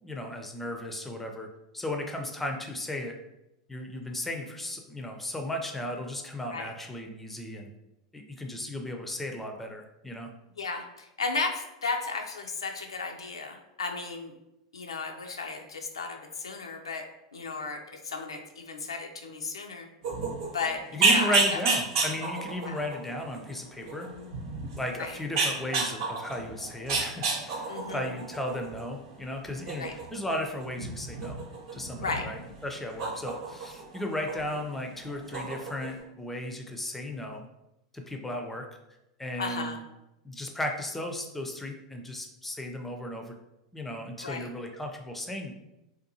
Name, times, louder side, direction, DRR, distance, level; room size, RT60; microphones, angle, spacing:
voice 1, 0.0-1.5 1.7-3.1 3.7-7.7 8.1-10.3 20.9-24.1 24.7-31.4 31.7-37.5 37.9-38.7 39.2-39.8 40.2-43.4 43.7-45.5, left 1 dB, 5° left, 3 dB, 0.4 m, -35 dB
voice 2, 10.6-14.3 14.7-17.0 17.3-19.9 20.5-21.6 22.6-22.8 24.0-24.3 25.0-25.2 27.7-28.1 29.8-29.9 32.0-32.3 39.4-39.8 44.2-44.5, left 4 dB, 80° left, 3 dB, 0.3 m, -34 dB
sound 1, 20.0-34.6 34.9-36.0, right 3 dB, 60° right, 0.7 m, -31 dB
2.6 x 2.2 x 2.7 m, 0.92 s
hypercardioid pair, 90°, 3 cm